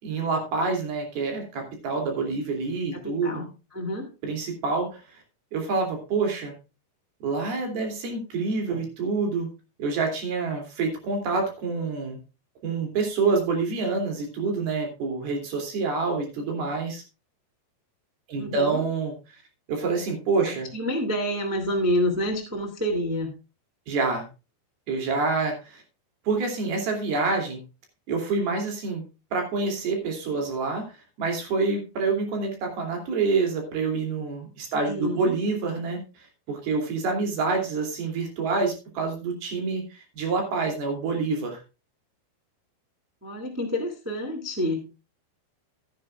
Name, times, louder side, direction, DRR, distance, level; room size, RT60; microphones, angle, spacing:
voice 1, 0.0-3.5 4.2-5.0 5.5-6.5 7.2-9.5 9.8-12.2 12.6-17.0 18.3-19.1 19.7-20.7 23.9-24.3 24.9-25.8 26.3-27.6 28.1-29.0 29.3-41.6, right 4 dB, 60° right, 2 dB, 4.6 m, -27 dB
voice 2, 3.0-3.5 3.7-4.1 18.4-18.8 20.4-23.3 34.8-35.4 43.2-44.8, equal, 10° right, 1 dB, 0.8 m, -28 dB
15.5 x 10.0 x 2.4 m, 0.30 s
omnidirectional pair, 5.0 m